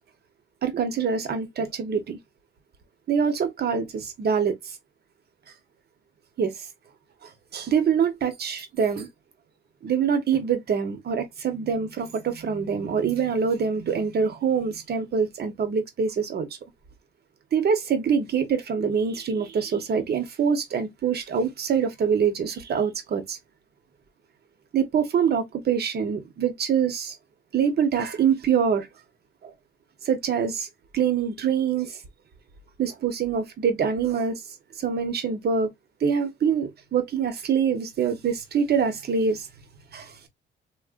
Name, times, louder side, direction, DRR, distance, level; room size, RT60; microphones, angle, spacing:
voice 1, 0.6-2.2 3.1-4.7 6.4-6.5 7.5-9.1 9.8-16.5 17.5-23.4 24.7-27.1 27.5-28.9 30.0-30.7 30.9-32.0 32.8-34.4 34.8-35.7 36.0-39.5 39.9-40.1, right 6 dB, 55° right, 1.1 m, -25 dB
3.7 x 2.4 x 2.5 m
cardioid pair, 90°, 20 cm